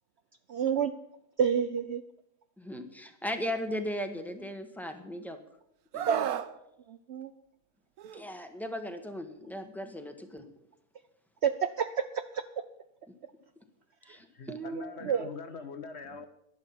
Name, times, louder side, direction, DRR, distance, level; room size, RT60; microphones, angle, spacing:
voice 1, 0.5-0.9 1.4-2.0 6.1-6.3 6.9-7.3 11.4-12.1 12.3-12.4 14.5-15.3, right 7 dB, 60° right, 10 dB, 0.8 m, -29 dB
voice 2, 2.6-5.4 5.9-6.1 8.1-10.4 14.1-14.6, equal, ahead, 6 dB, 1.2 m, -37 dB
Screaming, 5.9-6.5 8.0-8.2, right 10 dB, 90° right, 1.2 m, -32 dB
voice 3, 14.3-16.3, left 5 dB, 50° left, 9 dB, 1.2 m, -43 dB
11.0 x 11.0 x 7.1 m, 0.80 s
omnidirectional pair, 1.5 m